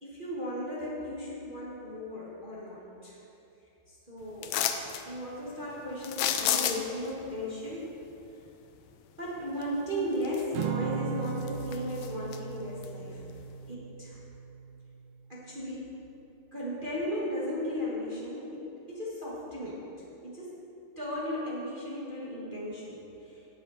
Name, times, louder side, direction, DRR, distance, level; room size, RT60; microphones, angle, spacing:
voice 1, 0.0-3.2 4.1-4.5 5.0-8.0 9.2-13.2 13.7-14.2 15.3-15.9 16.5-19.8 20.2-20.6 21.0-23.0, equal, 40° right, -7 dB, 0.7 m, -36 dB
sound 1, 4.4-5.0 6.0-7.1 9.6-9.7 10.2-10.9 11.3-12.4 12.8-12.9, left 10 dB, 80° left, 1.9 m, -30 dB
Acoustic guitar / Strum, 10.5-15.0, right 6 dB, 85° right, 1.9 m, -37 dB
17.5 x 7.9 x 4.3 m, 2.9 s
omnidirectional pair, 4.6 m